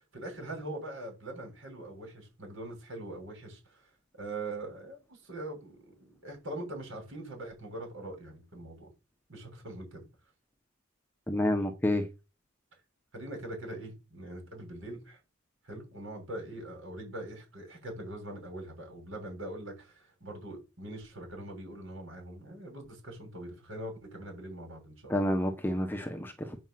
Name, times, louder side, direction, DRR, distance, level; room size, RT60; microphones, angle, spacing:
voice 1, 0.0-3.6 4.2-8.9 9.3-10.0 13.1-15.2 15.6-25.2, right 1 dB, 60° right, 6.9 m, -42 dB
voice 2, 11.3-12.0 25.1-26.6, left 1 dB, 10° left, 1.2 m, -29 dB
9.0 x 5.3 x 7.6 m
head